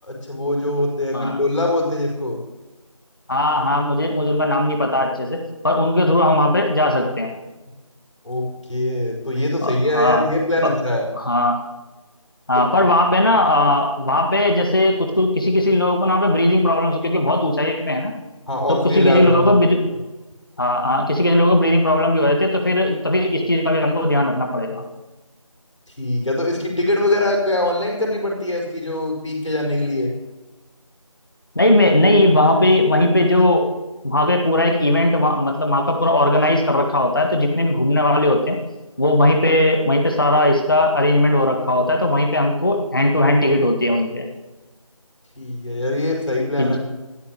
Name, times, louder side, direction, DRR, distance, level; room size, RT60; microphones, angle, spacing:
voice 1, 0.0-2.4 8.2-11.1 12.5-12.6 18.5-19.6 26.0-30.1 45.3-46.8, left 1 dB, 60° left, 0 dB, 4.9 m, -22 dB
voice 2, 3.3-7.3 9.6-10.3 10.6-10.7 11.2-11.6 12.5-18.1 18.7-19.8 20.6-24.8 31.5-33.6 34.0-38.6 39.0-44.2 46.6-46.8, left 1 dB, 40° left, 3 dB, 1.8 m, -18 dB
13.0 x 11.0 x 7.8 m, 1.1 s
figure-of-eight pair, 175°, 18 cm